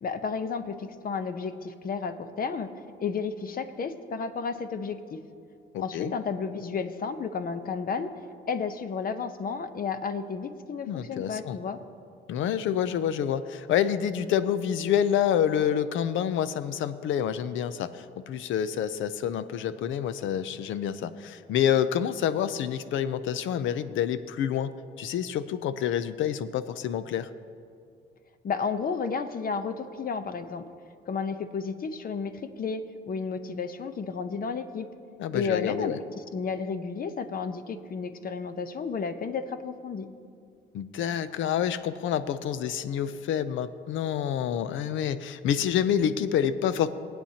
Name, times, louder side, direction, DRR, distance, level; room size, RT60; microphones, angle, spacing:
voice 1, 0.0-2.7 3.0-5.2 5.8-8.1 8.5-11.8 28.4-30.6 31.1-34.9 35.3-40.1, left 5 dB, 45° left, 10 dB, 0.8 m, -32 dB
voice 2, 5.7-6.1 10.9-11.6 12.3-24.7 25.0-27.3 35.2-36.0 40.7-46.9, left 9 dB, 80° left, 13 dB, 0.6 m, -28 dB
21.0 x 8.9 x 2.9 m, 2.4 s
cardioid pair, 90°, 20 cm